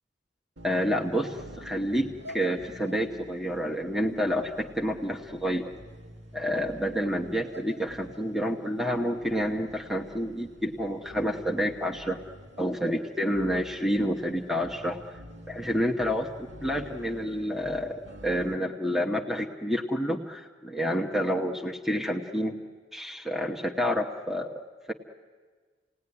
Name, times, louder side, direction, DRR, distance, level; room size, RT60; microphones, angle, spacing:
voice 1, 0.6-5.6 6.3-12.2 12.6-15.0 15.5-16.3 16.6-22.6 22.9-24.6 24.9-25.0, equal, ahead, 2 dB, 1.1 m, -29 dB
sound 1, 0.6-18.5, equal, 80° right, 2.3 m, -48 dB
29.0 x 18.5 x 9.8 m, 1.5 s
head